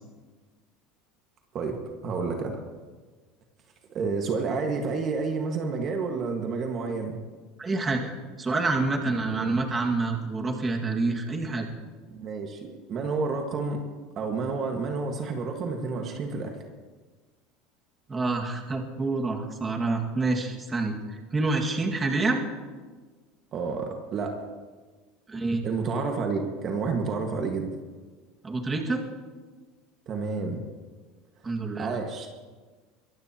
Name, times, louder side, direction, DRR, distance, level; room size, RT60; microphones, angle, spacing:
voice 1, 1.5-2.6 3.9-7.2 9.3-9.6 12.1-13.8 14.2-16.6 23.5-24.4 25.6-27.7 30.1-30.6 31.8-32.3, right 4 dB, 40° right, 3 dB, 1.7 m, -30 dB
voice 2, 7.6-11.7 18.1-22.4 25.3-25.6 28.4-29.0 31.4-32.0, right 3 dB, 20° right, 1 dB, 2.0 m, -27 dB
23.5 x 15.0 x 3.0 m, 1.4 s
supercardioid pair, 115°, 0 cm